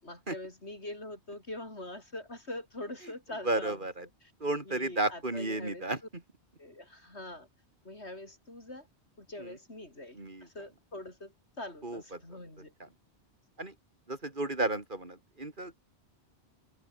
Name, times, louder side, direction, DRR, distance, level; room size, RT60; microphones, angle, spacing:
voice 1, 0.0-3.9 4.2-4.3 4.6-5.8 6.6-7.5 7.8-8.9 9.2-12.7, left 1 dB, 75° left, 6.7 m, -44 dB
voice 2, 3.4-4.1 4.4-6.0 9.4-9.6 10.1-10.5 11.8-12.2 13.6-13.7 14.1-15.9, right 2 dB, 50° right, 3.7 m, -33 dB
omnidirectional pair, 1.1 m